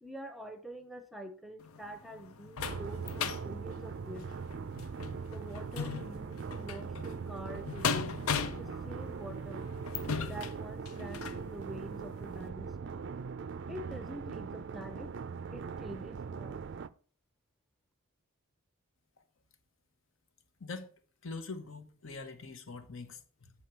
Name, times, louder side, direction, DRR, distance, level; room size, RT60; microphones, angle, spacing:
voice 1, 0.0-4.3 5.3-9.7 10.2-13.0 13.7-15.1 15.5-16.7, right 1 dB, ahead, 0.6 m, -46 dB
sound 1, 1.6-11.4 12.0-12.1 12.5-12.6, left 6 dB, 80° left, 0.6 m, -38 dB
sound 2, 2.6-16.9, right 5 dB, 55° right, 0.4 m, -41 dB
voice 2, 20.6-20.9 21.2-23.5, left 3 dB, 60° left, 0.9 m, -43 dB
8.2 x 4.4 x 4.5 m
head